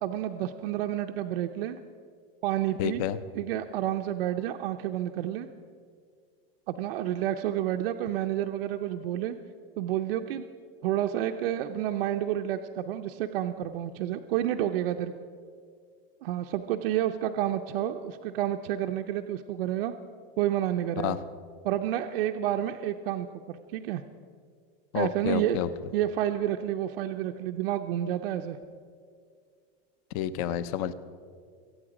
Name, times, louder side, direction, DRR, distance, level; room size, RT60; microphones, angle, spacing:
voice 1, 0.0-1.8 2.4-3.0 3.3-5.5 6.7-9.4 9.8-10.4 10.8-15.1 16.2-19.9 20.4-21.2 21.6-24.0 24.9-25.6 25.9-28.6, right 12 dB, 70° right, 5 dB, 0.7 m, -30 dB
voice 2, 2.8-3.2 21.0-21.2 24.9-25.7 30.1-30.9, left 11 dB, 35° left, 15 dB, 0.5 m, -29 dB
23.5 x 8.7 x 5.0 m, 2.1 s
supercardioid pair, 175°, 30 cm